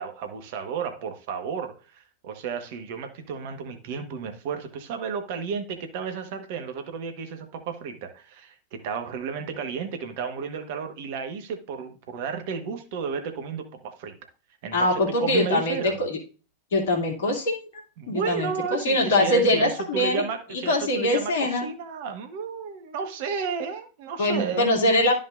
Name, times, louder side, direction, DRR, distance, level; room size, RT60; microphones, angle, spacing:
voice 1, 0.0-14.2 14.6-16.0 18.0-24.7, right 6 dB, 50° right, 1.3 m, -32 dB
voice 2, 14.7-16.2 16.7-17.7 18.1-20.2 20.5-21.7 24.2-25.1, left 1 dB, 60° left, 2.5 m, -23 dB
12.5 x 5.5 x 2.6 m
figure-of-eight pair, 90°, 0 cm